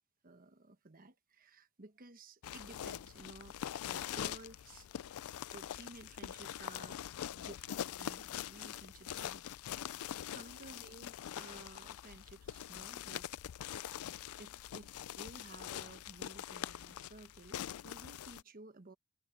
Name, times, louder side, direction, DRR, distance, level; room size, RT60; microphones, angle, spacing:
voice 1, 0.2-3.6 3.8-4.9 5.5-7.0 7.3-13.3 14.4-18.9, right 2 dB, 40° right, 1.1 m, -55 dB
sound 1, 2.4-18.4, left 10 dB, 70° left, 0.4 m, -44 dB
head